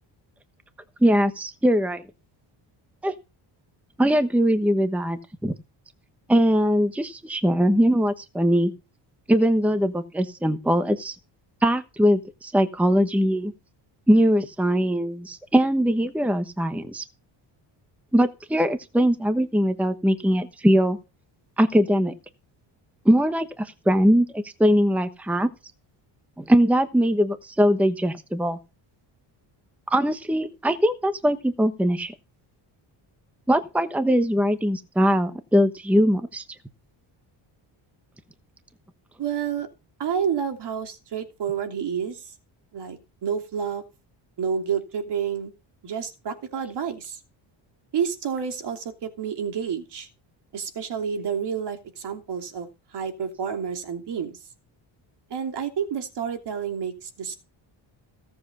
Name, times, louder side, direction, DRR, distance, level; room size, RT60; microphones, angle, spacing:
voice 1, 1.0-2.0 3.0-3.1 4.0-5.6 6.3-8.7 9.3-11.2 11.6-13.5 14.1-17.0 18.1-21.0 21.6-22.1 23.0-25.5 26.4-28.6 29.9-32.1 33.5-36.4, equal, 5° right, 10 dB, 1.1 m, -21 dB
voice 2, 39.2-39.7 40.0-42.3 42.7-43.8 44.4-45.5 45.8-47.2 47.9-50.1 50.5-54.4 55.3-57.3, right 7 dB, 55° right, 6 dB, 3.1 m, -29 dB
17.0 x 7.7 x 5.5 m, 0.27 s
cardioid pair, 130°, 47 cm